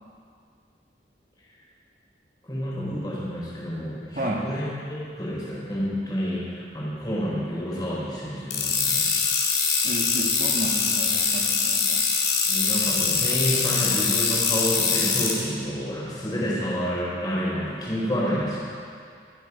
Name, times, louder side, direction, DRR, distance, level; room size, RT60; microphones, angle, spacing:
voice 1, 2.5-4.6 4.9-9.1 12.5-18.6, equal, 20° left, -8 dB, 4.4 m, -29 dB
voice 2, 4.1-4.5 9.8-12.0, right 1 dB, 45° right, 0 dB, 1.6 m, -32 dB
sound 1, 8.5-15.3, left 5 dB, 80° left, 3.3 m, -23 dB
24.5 x 8.2 x 5.6 m, 2.3 s
head